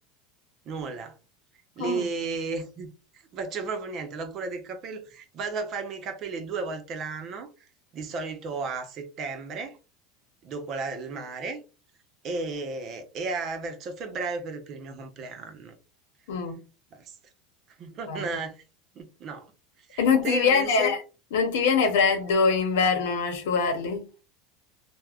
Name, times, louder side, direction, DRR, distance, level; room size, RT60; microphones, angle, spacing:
voice 1, 0.6-1.2 1.8-2.9 3.1-9.8 10.4-11.6 12.2-15.8 16.9-17.2 17.8-18.6 18.9-19.5 19.8-20.9, right 4 dB, 45° right, 0.7 m, -34 dB
voice 2, 16.3-16.6 18.1-18.3 20.0-21.0 21.3-24.1, left 5 dB, 80° left, 0.7 m, -23 dB
3.3 x 2.1 x 2.3 m
supercardioid pair, 110°, 0 cm